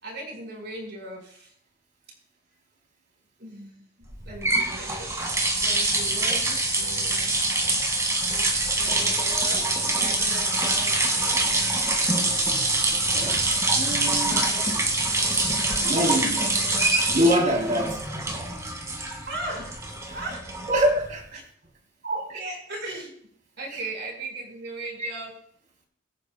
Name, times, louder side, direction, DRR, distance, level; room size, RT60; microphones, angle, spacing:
voice 1, 0.0-1.5 3.4-3.8 4.2-7.4 8.7-11.6 12.2-12.8 13.2-13.4 14.1-14.6 19.3-19.7 20.0-20.6 21.3-21.4 22.0-23.1 23.6-25.3, right 2 dB, 55° right, 1 dB, 4.8 m, -38 dB
sound 1, 4.1-21.1, right 2 dB, 15° right, 1.9 m, -25 dB
voice 2, 13.7-14.4 15.3-15.5 15.8-16.4 17.1-18.0 20.7-21.4 25.0-25.1, equal, 40° right, 1 dB, 3.3 m, -24 dB
23.0 x 9.5 x 2.2 m, 0.63 s
head